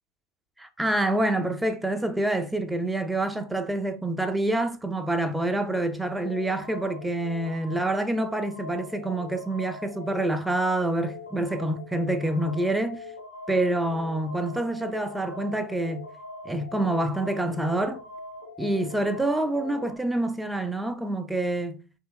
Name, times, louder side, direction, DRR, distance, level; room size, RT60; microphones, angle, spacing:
voice 1, 0.6-13.1 13.5-16.1 16.5-18.0 18.6-21.8, right 1 dB, 5° right, 0.4 m, -27 dB
sound 1, 6.2-20.0, left 3 dB, 85° left, 0.7 m, -42 dB
2.8 x 2.7 x 2.3 m
figure-of-eight pair, 80°, 0 cm